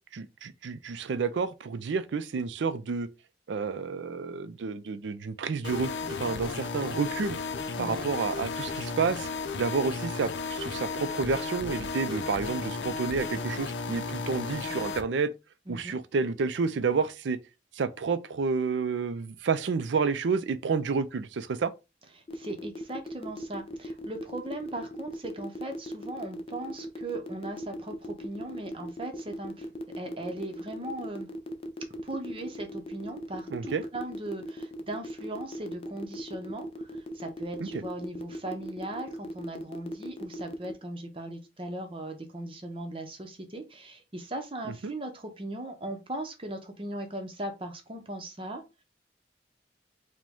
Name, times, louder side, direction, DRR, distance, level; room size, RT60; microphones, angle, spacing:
voice 1, 0.1-3.1 3.5-7.4 7.8-9.3 9.6-15.3 15.7-17.4 17.8-21.7 33.5-33.8 37.6-37.7 44.8-44.9, right 5 dB, 90° right, 0.4 m, -30 dB
sound 1, 5.6-15.0, left 4 dB, 85° left, 0.5 m, -34 dB
voice 2, 15.7-16.0 22.2-29.7 30.0-31.3 32.0-48.6, right 1 dB, 30° right, 0.7 m, -38 dB
sound 2, 22.3-40.7, equal, 35° left, 0.5 m, -39 dB
4.9 x 2.2 x 3.6 m
head